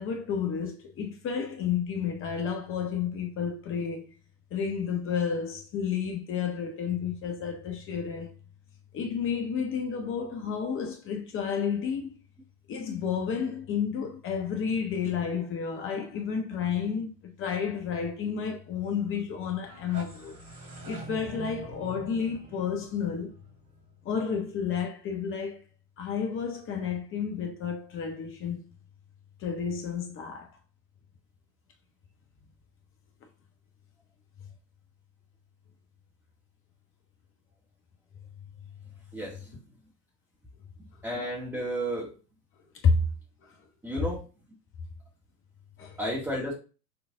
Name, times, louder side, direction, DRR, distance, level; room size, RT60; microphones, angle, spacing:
voice 1, 0.0-4.1 4.5-8.3 8.9-12.1 12.7-20.4 20.8-23.3 24.0-25.6 26.0-28.7 29.4-30.5 42.8-43.0 43.4-43.5 45.8-46.0, left 6 dB, 25° left, 1.2 m, -31 dB
sound 1, 19.5-24.4, right 3 dB, 65° right, 2.9 m, -45 dB
voice 2, 39.1-39.5 41.0-42.1 43.8-44.3 46.0-46.5, right 1 dB, 5° right, 2.1 m, -32 dB
6.9 x 3.8 x 3.8 m
figure-of-eight pair, 90°, 49 cm